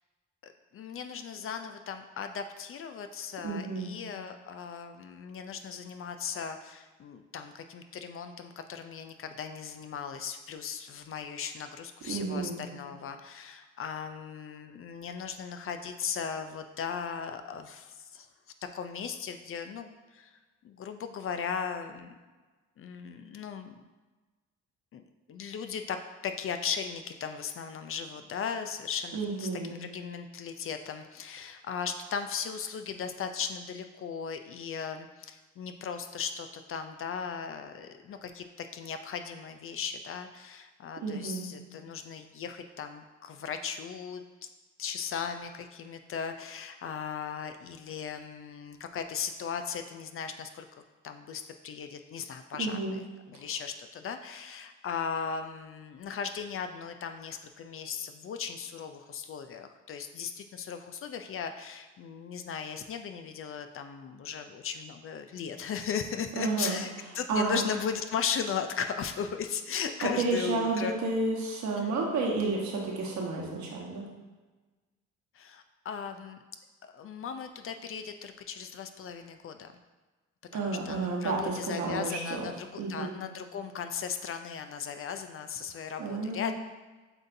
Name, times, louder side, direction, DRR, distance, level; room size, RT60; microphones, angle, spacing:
voice 1, 0.4-18.3 18.7-20.4 20.6-22.1 22.8-23.8 24.9-25.0 25.3-44.5 44.8-50.7 51.0-53.0 53.3-70.9 71.8-71.9 75.3-76.4 76.8-79.7 80.5-86.5, left 7 dB, 45° left, 8 dB, 0.4 m, -37 dB
voice 2, 3.4-3.9 12.0-12.6 29.1-29.8 41.0-41.5 52.6-53.0 66.4-66.8 67.3-67.6 70.0-74.1 80.5-82.5 82.8-83.1 86.0-86.5, right 3 dB, 70° right, -2 dB, 1.1 m, -31 dB
7.6 x 2.7 x 2.6 m, 1.3 s
cardioid pair, 90°, 30 cm